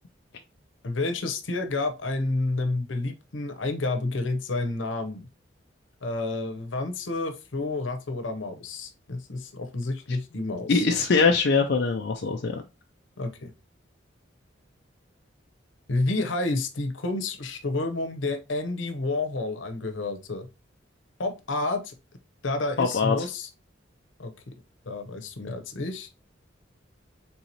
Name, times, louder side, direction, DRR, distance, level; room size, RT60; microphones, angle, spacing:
voice 1, 0.8-5.2 6.0-10.9 13.2-13.5 15.9-20.5 21.2-21.9 22.4-23.5 24.2-24.5 24.8-26.1, left 2 dB, 85° left, 0.8 m, -30 dB
voice 2, 10.7-12.6 22.8-23.3, left 4 dB, 60° left, 0.4 m, -22 dB
4.1 x 3.8 x 2.9 m
head